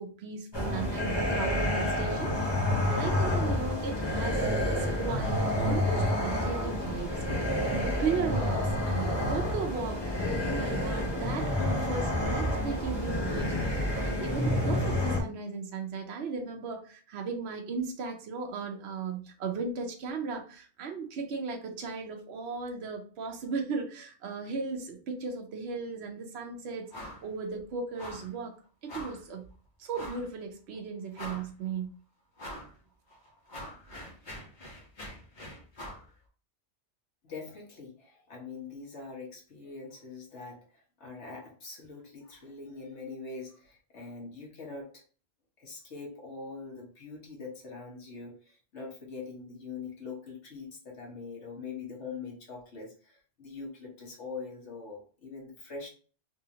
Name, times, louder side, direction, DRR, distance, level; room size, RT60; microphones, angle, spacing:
voice 1, 0.0-2.4 2.9-7.2 7.5-28.5 28.8-29.5 29.8-31.9, right 5 dB, 70° right, 3 dB, 0.9 m, -36 dB
sound 1, 0.5-15.2, left 1 dB, 25° left, 0.9 m, -29 dB
Airy Whooshes, 26.9-27.3 27.5-27.6 28.0-28.3 28.9-29.2 29.9-30.3 30.7-30.8 31.1-31.7 32.4-32.7 33.1-36.1, equal, 45° left, 1.3 m, -43 dB
voice 2, 37.2-45.0 45.6-55.9, left 4 dB, 85° left, -1 dB, 1.5 m, -43 dB
3.6 x 2.8 x 2.8 m, 0.39 s
omnidirectional pair, 1.2 m